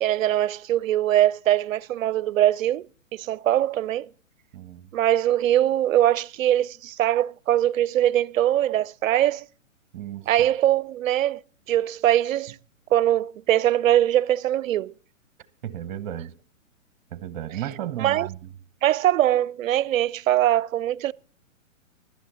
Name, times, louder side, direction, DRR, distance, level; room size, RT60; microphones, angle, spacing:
voice 1, 0.0-2.8 3.1-4.1 4.9-9.4 10.3-11.4 11.7-12.6 12.9-14.9 18.0-18.3 18.8-21.1, right 12 dB, 75° right, 0.5 m, -22 dB
voice 2, 4.5-4.9 9.9-10.3 15.6-16.3 17.1-18.5, right 11 dB, 40° right, 0.9 m, -34 dB
16.0 x 12.0 x 4.1 m
hypercardioid pair, 145°, 40 cm